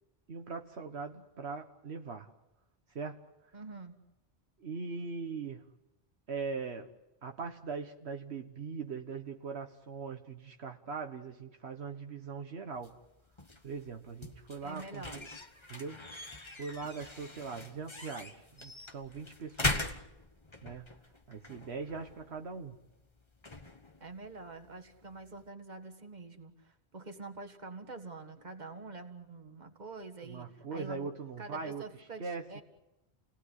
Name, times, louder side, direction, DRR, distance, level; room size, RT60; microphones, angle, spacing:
voice 1, 0.3-2.3 2.9-3.2 4.6-5.6 6.3-6.9 7.2-12.9 13.6-15.3 15.7-16.0 16.6-20.0 20.6-20.9 21.3-22.8 30.2-31.8 32.2-32.6, right 5 dB, 80° right, 5 dB, 1.5 m, -41 dB
voice 2, 3.5-3.9 14.6-15.2 24.0-32.6, right 3 dB, 45° right, 6 dB, 1.9 m, -46 dB
sound 1, 12.7-25.5, left 2 dB, 25° left, 1.3 m, -42 dB
29.0 x 18.5 x 8.2 m, 0.92 s
omnidirectional pair, 1.1 m